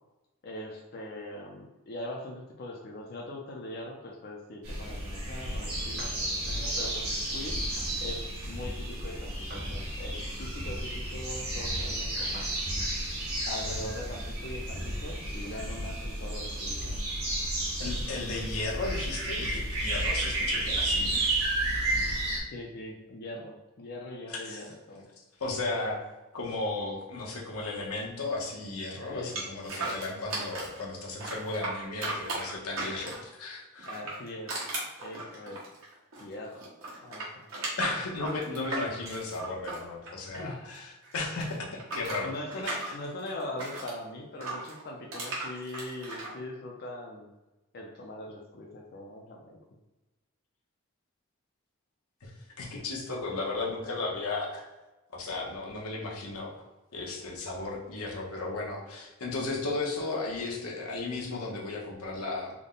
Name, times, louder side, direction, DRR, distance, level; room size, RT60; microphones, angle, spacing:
voice 1, 0.4-7.6 8.0-12.5 13.5-16.9 22.5-25.1 28.9-29.4 29.8-30.0 33.9-34.6 35.0-35.6 36.2-36.7 37.0-37.4 40.3-40.7 42.2-47.3 47.7-49.6, left 1 dB, 45° left, -1 dB, 0.4 m, -41 dB
sound 1, 4.6-22.4, right 1 dB, 90° right, 1.2 m, -32 dB
sound 2, 6.0-6.2 6.8-7.0 7.7-8.0 9.5-10.2 12.3-12.6 13.1-13.2 14.9-15.6, right 1 dB, 45° right, 0.9 m, -49 dB
voice 2, 17.8-21.2 24.3-24.6 25.4-26.0 26.3-33.9 37.8-42.9 52.2-54.7 55.1-56.5 56.9-62.5, left 3 dB, 90° left, -2 dB, 0.8 m, -35 dB
sound 3, 29.4-30.8 31.2-33.3 33.8-36.3 36.6-40.8 41.0-43.9 44.4-46.3, right 2 dB, 70° right, 1.2 m, -36 dB
3.5 x 2.1 x 3.8 m, 1.1 s
head